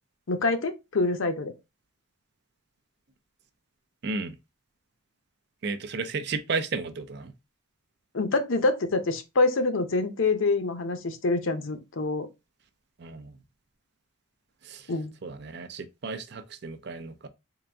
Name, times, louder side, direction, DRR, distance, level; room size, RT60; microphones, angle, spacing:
voice 1, 0.3-1.5 8.1-12.3 14.9-15.1, left 3 dB, 70° left, 0.7 m, -26 dB
voice 2, 4.0-4.4 5.6-7.3 13.0-13.4 14.6-14.9 15.2-17.3, right 4 dB, 55° right, 0.5 m, -33 dB
3.9 x 2.6 x 3.3 m
head